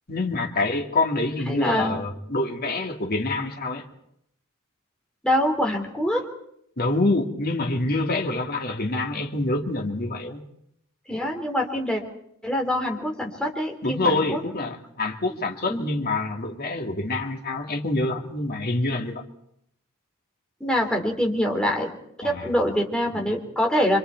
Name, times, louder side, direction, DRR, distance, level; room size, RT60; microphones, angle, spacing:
voice 1, 0.1-3.9 6.8-10.4 13.8-19.2 22.2-22.5, left 2 dB, 45° left, 2 dB, 2.4 m, -26 dB
voice 2, 1.5-2.0 5.2-6.2 11.1-12.0 12.4-14.4 15.7-15.9 20.6-21.9 22.2-24.0, equal, 5° left, 1 dB, 3.4 m, -24 dB
26.0 x 26.0 x 4.6 m, 0.73 s
head